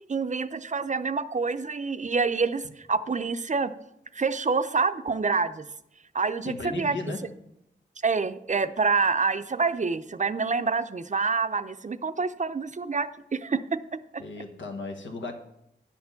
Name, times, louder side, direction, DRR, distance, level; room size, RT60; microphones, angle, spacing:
voice 1, 0.1-3.7 4.1-5.7 6.1-7.0 8.0-14.2, right 4 dB, 40° right, 12 dB, 0.5 m, -27 dB
voice 2, 6.4-7.4 14.2-15.3, left 3 dB, 90° left, 4 dB, 1.2 m, -35 dB
10.0 x 4.4 x 7.0 m, 0.81 s
wide cardioid pair, 60°, 19 cm